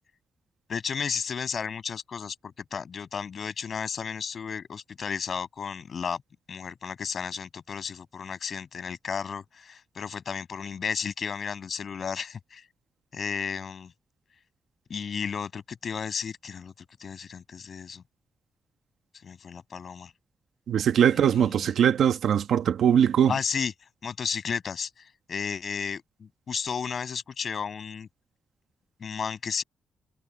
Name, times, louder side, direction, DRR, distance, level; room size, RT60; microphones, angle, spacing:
voice 1, 0.7-2.3 2.7-6.2 6.5-12.6 13.1-13.9 14.9-16.7 17.0-18.0 19.2-20.1 21.1-21.7 23.3-23.7 24.0-24.9 25.3-28.1 29.0-29.6, left 6 dB, 60° left, 7.0 m, -33 dB
voice 2, 20.7-23.3, right 9 dB, 85° right, 1.3 m, -21 dB
cardioid pair, 95°, 0 cm